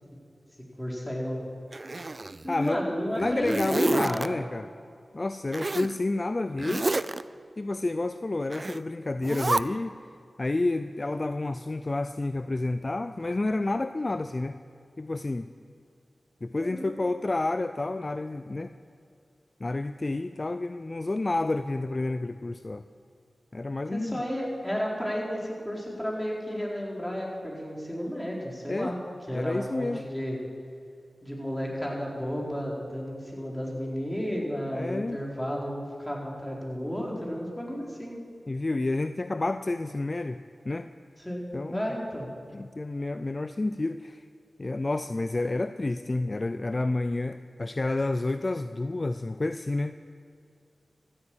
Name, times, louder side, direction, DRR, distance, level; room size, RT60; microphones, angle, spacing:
voice 1, 0.8-1.5 2.4-4.4 16.6-16.9 23.9-29.0 29.3-30.4 31.2-38.2 41.2-41.5 41.7-42.3, equal, 5° left, -3 dB, 4.3 m, -32 dB
Zipper (clothing), 1.7-2.7 3.1-4.3 5.5-5.9 6.6-7.2 8.5-8.8 9.2-9.6, right 2 dB, 45° right, 0.4 m, -30 dB
voice 2, 2.5-2.8 3.2-4.7 5.1-6.9 7.6-9.9 10.4-14.6 15.0-15.5 16.4-18.7 19.6-22.8 23.5-24.2 28.7-28.9 29.3-30.0 34.7-35.2 38.5-40.9 41.5-41.9 42.5-44.2 44.6-50.0, left 2 dB, 45° left, 11 dB, 0.4 m, -30 dB
14.5 x 8.9 x 8.7 m, 2.4 s
cardioid pair, 45°, 0 cm